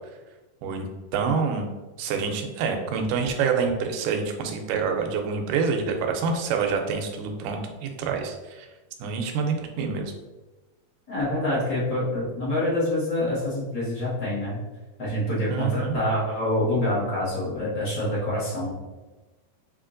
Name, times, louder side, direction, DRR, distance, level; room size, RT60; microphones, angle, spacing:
voice 1, 1.1-1.7 2.0-8.7 9.0-10.1 15.5-16.0, right 5 dB, 85° right, 4 dB, 2.1 m, -27 dB
voice 2, 11.1-14.6 15.0-18.7, left 1 dB, 45° left, -9 dB, 1.3 m, -26 dB
6.5 x 2.8 x 2.5 m, 1.2 s
omnidirectional pair, 3.8 m